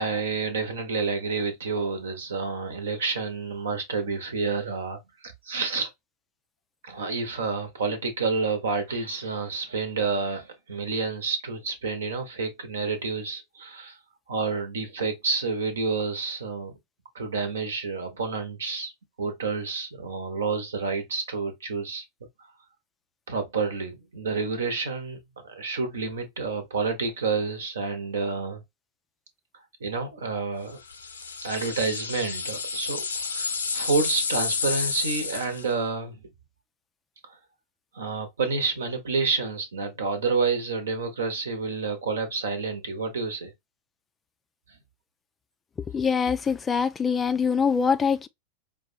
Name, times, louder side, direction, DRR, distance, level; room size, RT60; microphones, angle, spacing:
voice 1, 0.0-5.9 6.8-14.0 14.3-16.8 17.1-18.9 19.2-22.0 23.3-28.6 29.8-30.8 31.4-36.2 37.3-37.4 37.9-43.5, right 4 dB, 65° right, 1.0 m, -29 dB
sound 1, 30.9-35.7, left 5 dB, 75° left, 0.6 m, -30 dB
voice 2, 45.9-48.3, left 6 dB, 20° left, 0.3 m, -24 dB
5.0 x 2.3 x 2.6 m
figure-of-eight pair, 90°, 0 cm